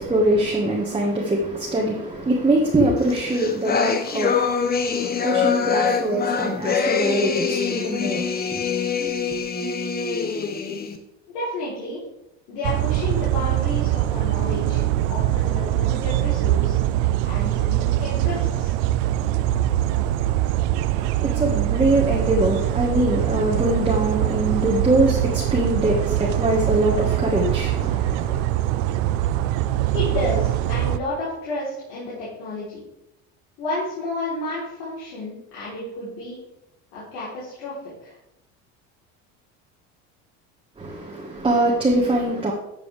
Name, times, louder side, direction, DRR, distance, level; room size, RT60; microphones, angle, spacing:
voice 1, 0.0-9.2 20.9-28.4 40.8-42.5, right 1 dB, 15° right, 1.6 m, -23 dB
sound 1, 3.1-11.0, left 6 dB, 30° left, 1.0 m, -24 dB
voice 2, 11.3-12.0 12.5-14.8 15.1-16.8 17.2-18.8 29.9-32.8 33.6-36.4 36.9-37.7 38.0-38.1, left 2 dB, 90° left, 3.7 m, -31 dB
sound 2, 12.6-31.0, right 13 dB, 85° right, 0.6 m, -23 dB
12.5 x 7.0 x 3.4 m
supercardioid pair, 110°, 33 cm